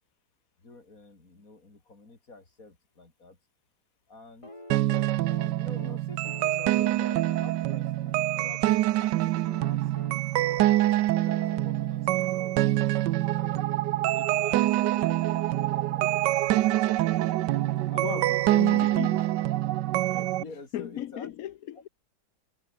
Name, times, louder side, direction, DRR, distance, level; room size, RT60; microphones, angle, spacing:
voice 1, 0.6-3.4 4.1-4.5 5.4-9.9 10.6-12.6 13.3-16.9 17.5-18.8 20.1-21.3, left 3 dB, 45° left, 4.8 m, -48 dB
sound 1, 4.4-8.5 9.5-13.1 14.5-14.6, left 1 dB, 15° left, 3.7 m, -48 dB
sound 2, 4.7-20.4, right 15 dB, 70° right, 1.2 m, -25 dB
voice 2, 18.0-19.3 20.4-21.9, left 12 dB, 65° left, 0.9 m, -36 dB
omnidirectional pair, 2.1 m